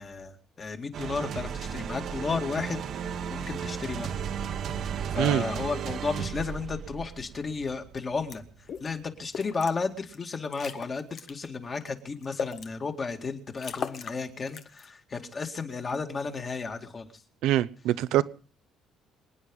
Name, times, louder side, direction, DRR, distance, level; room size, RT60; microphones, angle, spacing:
voice 1, 0.0-4.1 5.1-8.4 8.8-17.1, left 4 dB, 30° left, 2.2 m, -33 dB
sound 1, 0.9-9.5, right 7 dB, 50° right, 1.3 m, -35 dB
sound 2, 8.3-8.4 8.7-8.9 9.3-9.7 10.1-10.2 10.5-11.3 11.8-12.7 13.2-13.3 13.5-14.2 14.5-14.9, left 7 dB, 45° left, 1.4 m, -37 dB
voice 2, 17.4-18.2, right 13 dB, 80° right, 0.9 m, -24 dB
26.0 x 9.8 x 5.5 m
cardioid pair, 135°, 0 cm